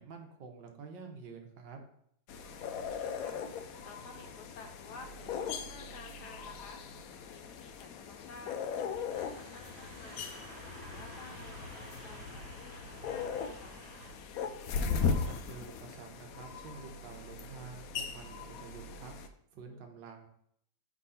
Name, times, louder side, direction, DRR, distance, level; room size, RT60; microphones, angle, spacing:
voice 1, 0.0-1.8 14.8-19.1 19.5-20.3, right 5 dB, 70° right, 3 dB, 1.5 m, -48 dB
sound 1, 2.3-19.3, left 6 dB, 85° left, 0.7 m, -39 dB
voice 2, 2.4-13.8 19.6-19.9, left 3 dB, 65° left, 3 dB, 1.1 m, -53 dB
sound 2, 9.1-14.1, right 1 dB, 90° right, 1.8 m, -50 dB
4.7 x 3.7 x 5.5 m, 0.70 s
omnidirectional pair, 2.1 m